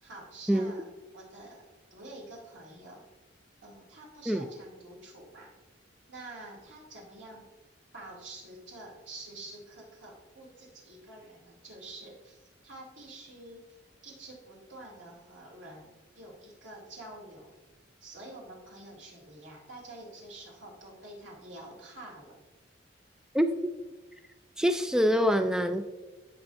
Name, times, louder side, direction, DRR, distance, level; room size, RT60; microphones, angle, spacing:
voice 1, 0.0-3.1 3.6-5.5 6.1-7.5 7.9-13.8 14.0-17.5 18.0-22.4, right 2 dB, 85° right, -2 dB, 2.5 m, -48 dB
voice 2, 23.3-23.8 24.6-25.8, equal, 5° right, 8 dB, 0.3 m, -25 dB
15.5 x 5.7 x 2.6 m, 1.2 s
head